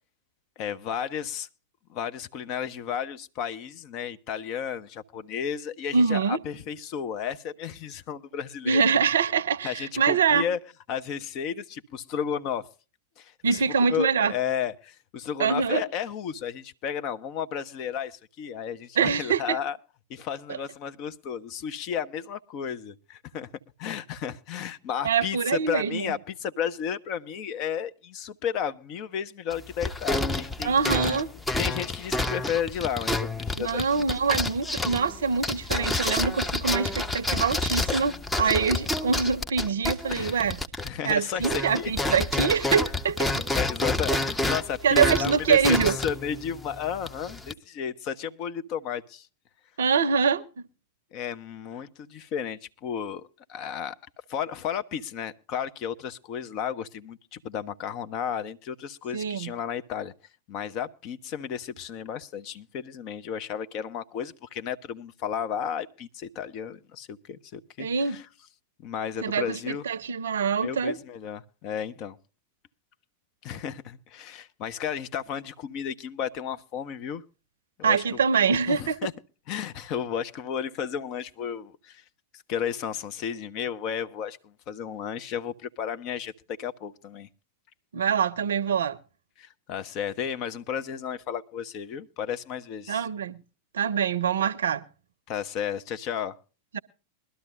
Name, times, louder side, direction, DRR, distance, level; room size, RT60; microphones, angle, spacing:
voice 1, 0.6-1.5 1.9-8.8 9.6-10.6 10.9-12.7 13.2-13.6 13.9-19.8 20.1-23.5 23.8-25.4 25.7-31.0 31.6-34.0 40.1-40.4 40.8-41.9 42.3-42.4 43.5-49.3 51.1-53.2 53.5-54.0 54.3-60.1 60.5-68.3 68.8-69.9 70.6-72.2 73.4-77.2 77.8-78.2 78.5-79.1 79.5-82.0 82.5-86.3 86.6-87.3 89.4-93.1 95.3-96.4, left 8 dB, 40° left, 0.8 m, -33 dB
voice 2, 5.9-6.4 8.7-10.5 13.4-14.3 15.4-15.8 19.0-19.6 25.0-26.1 30.6-31.3 33.6-40.6 41.0-43.4 44.8-46.0 49.8-50.4 59.1-59.5 67.8-68.2 69.2-71.0 77.8-79.0 87.9-89.0 92.9-93.4 93.7-94.8 96.7-96.8, right 6 dB, 65° right, 0.6 m, -24 dB
sound 1, 29.5-41.1 41.4-47.5, left 2 dB, 10° left, 0.8 m, -29 dB
22.0 x 12.5 x 2.4 m
figure-of-eight pair, 90°, 0 cm